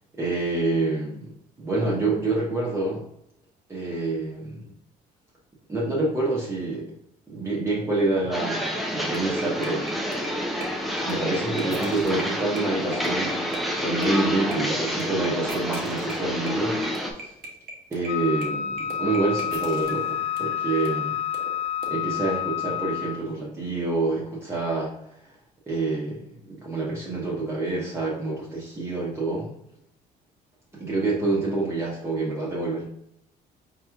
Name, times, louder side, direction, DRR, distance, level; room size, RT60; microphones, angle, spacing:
voice 1, 0.1-3.0 3.7-4.7 5.7-6.8 7.3-10.0 11.0-16.8 17.1-17.3 17.9-21.1 21.9-24.9 25.2-25.3 25.7-29.5 30.7-32.8, right 2 dB, 15° right, -6 dB, 1.0 m, -27 dB
sound 1, 8.3-17.1, equal, ahead, 0.6 m, -28 dB
sound 2, 9.0-21.9, right 3 dB, 65° right, 1.0 m, -40 dB
Wind instrument woodwind instrument, 18.1-23.3, left 9 dB, 70° left, 0.5 m, -29 dB
4.7 x 3.0 x 2.4 m, 0.74 s
cardioid pair, 110°, 17 cm